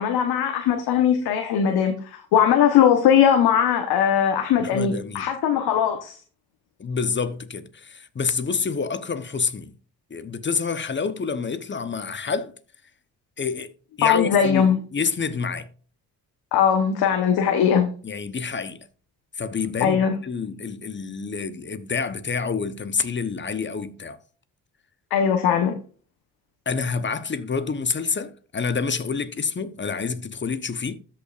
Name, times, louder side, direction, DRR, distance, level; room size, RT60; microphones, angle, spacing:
voice 1, 0.0-6.1 14.0-14.8 16.5-17.9 19.8-20.1 25.1-25.7, left 8 dB, 75° left, 1.2 m, -20 dB
voice 2, 4.6-5.3 6.8-9.7 10.1-12.5 13.4-13.7 14.0-15.7 18.0-18.9 19.4-24.2 26.7-30.9, left 5 dB, 30° left, 1.0 m, -28 dB
13.5 x 5.7 x 2.5 m
supercardioid pair, 70°, 38 cm